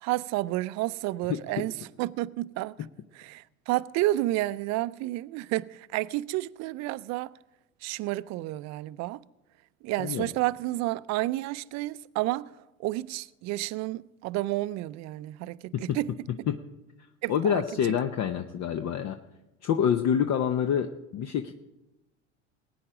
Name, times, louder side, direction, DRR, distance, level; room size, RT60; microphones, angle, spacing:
voice 1, 0.0-1.7 2.0-2.7 3.2-7.3 7.8-9.2 9.8-12.5 12.8-16.1 17.2-17.6, right 17 dB, 45° right, 0.5 m, -30 dB
voice 2, 10.0-10.3 15.7-16.0 16.5-16.6 17.3-19.2 19.6-21.5, left 8 dB, 45° left, 0.9 m, -27 dB
19.0 x 9.4 x 5.0 m
hypercardioid pair, 75°, 39 cm